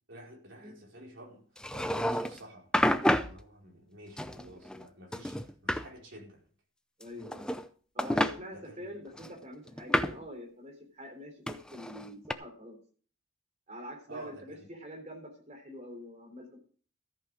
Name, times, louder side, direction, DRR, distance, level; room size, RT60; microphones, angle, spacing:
voice 1, 0.1-1.4 1.7-6.4 8.5-8.9 14.1-14.6, right 1 dB, 60° right, -1 dB, 4.6 m, -50 dB
sound 1, 1.6-2.4 2.7-3.4 4.2-4.9 5.1-5.9 7.0-7.7 8.0-8.3 9.2-10.2 11.5-12.3, left 1 dB, 5° left, 0.5 m, -29 dB
voice 2, 7.0-7.5 7.9-12.8 13.7-16.6, equal, 35° right, 3 dB, 3.6 m, -45 dB
14.0 x 8.6 x 5.0 m, 0.43 s
head